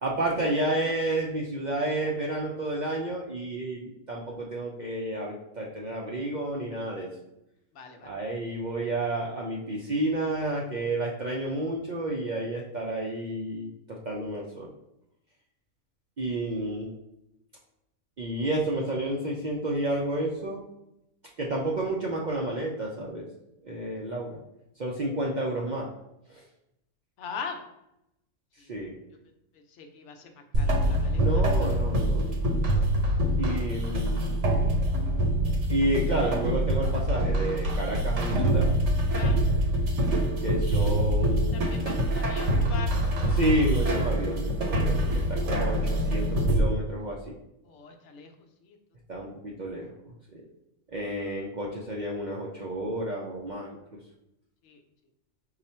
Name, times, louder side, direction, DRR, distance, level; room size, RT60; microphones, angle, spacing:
voice 1, 0.0-7.1 8.0-14.7 16.2-16.9 18.2-20.7 21.4-23.3 23.6-24.4 24.8-25.9 26.3-26.4 28.7-29.0 31.2-32.2 33.4-34.4 35.7-38.7 40.4-41.5 43.3-45.0 45.3-47.3 49.1-49.9 50.3-50.4 50.9-53.8, right 1 dB, 55° right, -2 dB, 0.5 m, -30 dB
voice 2, 7.7-8.1 27.2-27.6 28.6-28.7 29.7-30.3 30.6-31.7 39.1-39.4 41.5-43.6 47.6-48.3 48.6-48.8 54.6-54.8, left 5 dB, 70° left, 4 dB, 0.9 m, -41 dB
sound 1, 30.5-46.6, right 1 dB, 70° right, 1.0 m, -25 dB
5.3 x 2.4 x 4.2 m, 0.86 s
omnidirectional pair, 1.3 m